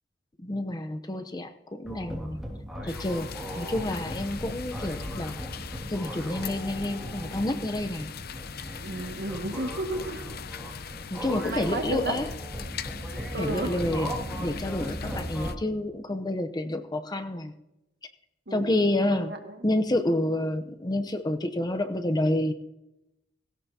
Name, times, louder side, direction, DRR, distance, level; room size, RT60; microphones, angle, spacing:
voice 1, 0.4-2.4 2.8-3.3 3.6-5.4 5.9-8.1 11.1-12.3 13.4-14.1 14.4-17.5 18.5-19.3 19.6-22.5, left 1 dB, 20° left, 8 dB, 0.7 m, -29 dB
sound 1, 1.8-15.5, equal, ahead, 2.3 m, -38 dB
sound 2, 2.9-15.6, left 5 dB, 55° left, 0.6 m, -40 dB
voice 2, 8.8-10.3 11.5-12.2 13.3-13.8 18.5-18.8 19.1-19.6, right 2 dB, 60° right, 4 dB, 1.9 m, -33 dB
17.0 x 16.5 x 2.8 m, 0.94 s
head